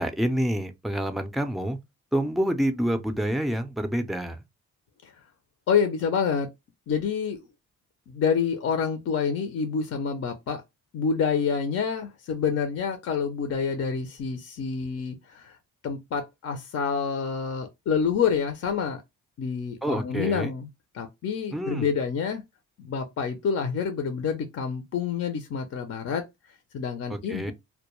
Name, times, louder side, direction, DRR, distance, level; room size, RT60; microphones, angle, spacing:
voice 1, 0.0-1.8 2.1-4.4 19.8-20.5 21.5-21.9 27.1-27.5, equal, ahead, 0.4 m, -27 dB
voice 2, 5.7-6.5 6.9-7.4 8.1-10.6 10.9-15.5 15.8-19.0 19.4-20.7 20.9-22.4 22.8-26.2 26.7-27.5, left 6 dB, 55° left, 0.6 m, -27 dB
2.2 x 2.2 x 2.9 m
cardioid pair, 90°, 30 cm